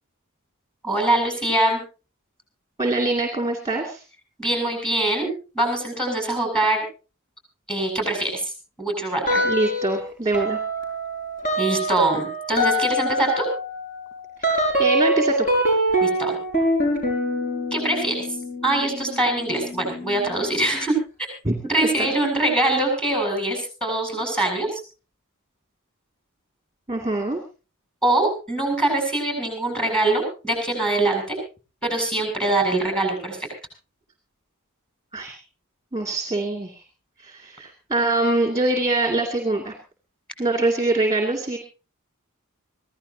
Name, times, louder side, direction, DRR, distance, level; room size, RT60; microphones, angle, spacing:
voice 1, 0.8-1.8 4.4-5.3 5.5-6.8 7.7-8.4 8.8-9.4 11.6-13.5 16.0-16.4 17.7-18.2 18.6-20.9 21.6-24.8 28.0-31.4 31.8-33.4, right 2 dB, 5° left, 4 dB, 7.6 m, -23 dB
voice 2, 2.8-4.0 9.4-10.6 14.8-15.5 21.4-21.5 22.0-22.1 26.9-27.4 35.1-35.4 35.9-36.8 37.2-39.7 40.4-41.6, right 2 dB, 15° right, 2 dB, 2.4 m, -23 dB
sound 1, 9.3-10.0 10.3-20.7, equal, 40° left, 6.4 m, -25 dB
24.5 x 16.0 x 2.8 m, 0.33 s
head